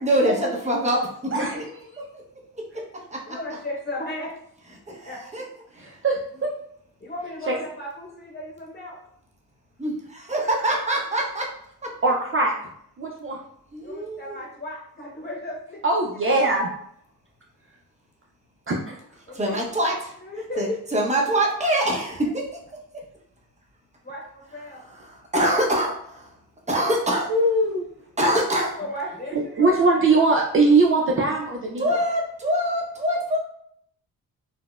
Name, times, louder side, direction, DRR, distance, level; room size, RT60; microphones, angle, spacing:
voice 1, 0.0-1.6 2.1-2.2 2.5-2.6 3.1-3.2 4.9-5.4 5.7-6.0 9.8-11.5 11.8-11.9 13.7-14.4 19.3-20.1 20.6-22.4 25.0-26.3 26.7-27.3 28.2-28.7 31.8-33.4, right 1 dB, 20° right, -2 dB, 0.8 m, -24 dB
voice 2, 1.3-1.7 5.8-6.5 7.5-7.6 12.0-12.5 13.0-13.4 15.8-16.7 18.7-19.0 27.3-27.9 29.6-31.9, right 2 dB, 35° right, -1 dB, 0.4 m, -21 dB
voice 3, 3.3-4.3 5.0-5.2 7.0-9.0 13.8-15.8 19.3-19.6 20.2-20.8 24.0-24.8 28.8-30.0, left 1 dB, 25° left, -4 dB, 1.0 m, -35 dB
3.9 x 2.1 x 2.3 m, 0.69 s
cardioid pair, 95°, 38 cm